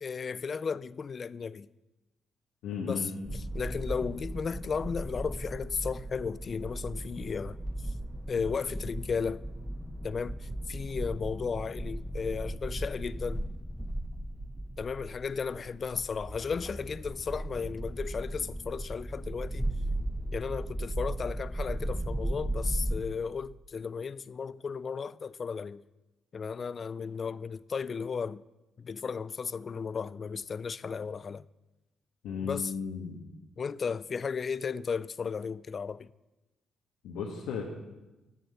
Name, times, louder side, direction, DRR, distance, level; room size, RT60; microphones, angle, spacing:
voice 1, 0.0-1.7 2.8-3.1 3.5-7.6 8.3-9.4 10.0-10.4 10.7-13.5 14.8-19.7 20.3-25.8 26.3-28.4 28.8-31.5 32.4-32.7 33.6-36.1, left 5 dB, 40° left, 0.3 m, -34 dB
voice 2, 2.6-3.1 32.2-33.2 37.0-37.6, left 6 dB, 85° left, 1.4 m, -35 dB
sound 1, 3.3-23.0, right 1 dB, ahead, 0.7 m, -36 dB
9.8 x 9.5 x 6.8 m
cardioid pair, 90°, 0 cm